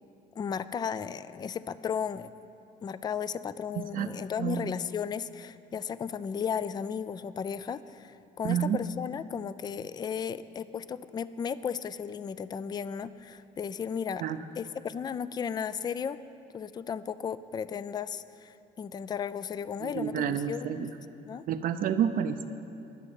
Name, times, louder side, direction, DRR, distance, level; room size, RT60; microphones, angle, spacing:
voice 1, 0.4-2.3 2.8-14.2 14.6-16.2 16.5-20.9 21.3-21.4, left 7 dB, 25° left, 16 dB, 0.3 m, -35 dB
voice 2, 3.7-4.1 4.4-4.7 8.4-8.8 14.2-14.4 19.8-20.9 21.5-22.5, right 9 dB, 55° right, 8 dB, 0.5 m, -29 dB
11.5 x 6.4 x 9.4 m, 2.8 s
cardioid pair, 110°, 17 cm